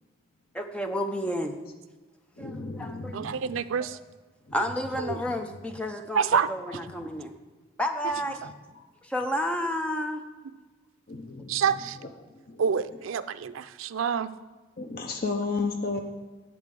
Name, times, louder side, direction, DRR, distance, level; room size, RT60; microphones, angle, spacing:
voice 1, 0.5-1.6 2.4-3.3 3.8-4.0 4.5-7.3 7.8-8.5 9.0-10.2, equal, 5° left, 5 dB, 0.6 m, -31 dB
voice 2, 2.4-3.4 8.8-8.9 11.1-12.1 12.5-12.9 13.4-13.5 14.8-16.0, left 4 dB, 50° left, 4 dB, 0.7 m, -33 dB
voice 3, 3.1-4.0 5.1-5.2 6.1-6.5 11.5-12.0 12.6-14.3, right 7 dB, 90° right, 13 dB, 0.4 m, -27 dB
10.5 x 4.4 x 7.7 m, 1.3 s
head